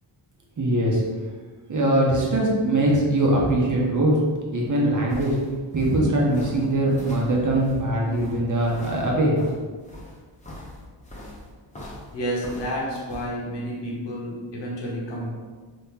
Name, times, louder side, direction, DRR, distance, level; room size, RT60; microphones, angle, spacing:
voice 1, 0.6-1.0 1.7-4.1 4.5-5.3 5.7-9.4, right 1 dB, 40° right, -2 dB, 0.8 m, -21 dB
sound 1, 5.1-13.3, left 1 dB, 15° left, 0.8 m, -42 dB
voice 2, 12.1-15.3, equal, 65° left, -3 dB, 1.1 m, -30 dB
3.0 x 2.8 x 3.6 m, 1.4 s
cardioid pair, 100°, 45 cm